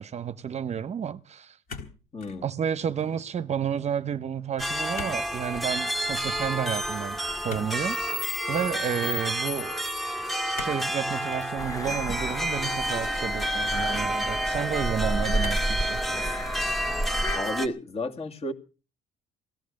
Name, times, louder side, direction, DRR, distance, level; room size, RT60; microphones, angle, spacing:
voice 1, 0.0-1.6 2.4-7.2 7.4-8.0 8.5-9.7 10.4-16.0, right 8 dB, 40° right, 0.8 m, -31 dB
sound 1, 1.7-2.4 2.8-3.2 4.9-5.2 5.5-5.7 7.5-8.3 10.5-10.9 11.3-11.5 12.4-13.2 13.9-14.0 15.4-15.8 16.4-16.9 17.2-17.6, left 4 dB, 60° left, 3.7 m, -42 dB
voice 2, 2.1-2.5 17.3-18.5, left 1 dB, 35° left, 2.4 m, -32 dB
sound 2, 4.6-17.7, equal, ahead, 2.1 m, -30 dB
sound 3, 11.6-17.4, equal, 20° left, 1.2 m, -32 dB
18.0 x 12.5 x 6.4 m
cardioid pair, 110°, 17 cm